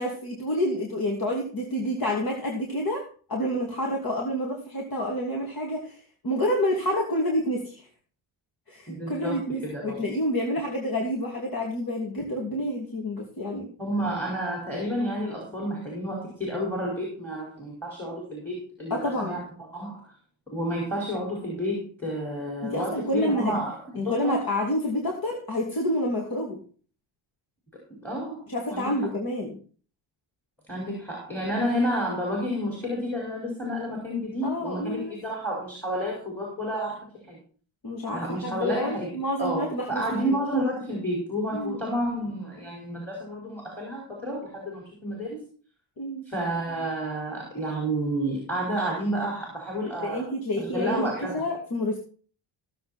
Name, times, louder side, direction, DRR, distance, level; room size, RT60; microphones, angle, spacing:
voice 1, 0.0-3.0 3.3-7.9 8.7-13.7 18.9-19.4 22.6-23.6 23.9-26.6 28.5-29.6 34.4-35.1 37.8-40.4 41.5-41.8 46.0-46.2 50.0-52.0, left 1 dB, 45° left, 0 dB, 2.7 m, -28 dB
voice 2, 8.9-10.0 13.8-19.4 19.7-20.1 20.5-23.8 24.0-24.3 28.0-28.9 30.7-37.4 38.1-39.1 39.4-45.4 46.3-50.2 50.6-51.4, equal, 5° left, -2 dB, 5.2 m, -30 dB
16.5 x 7.7 x 4.4 m, 0.42 s
cardioid pair, 105°, 48 cm